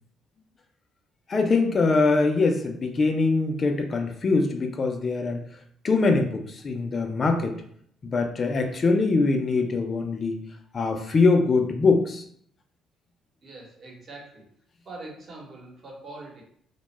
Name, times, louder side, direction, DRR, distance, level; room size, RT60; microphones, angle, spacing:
voice 1, 1.3-5.4 5.8-7.6 8.0-10.4 10.7-12.2, left 3 dB, 40° left, 5 dB, 0.3 m, -23 dB
voice 2, 13.4-14.5 14.8-16.4, right 2 dB, 50° right, -2 dB, 0.9 m, -43 dB
2.1 x 2.0 x 3.1 m, 0.63 s
supercardioid pair, 70°, 0 cm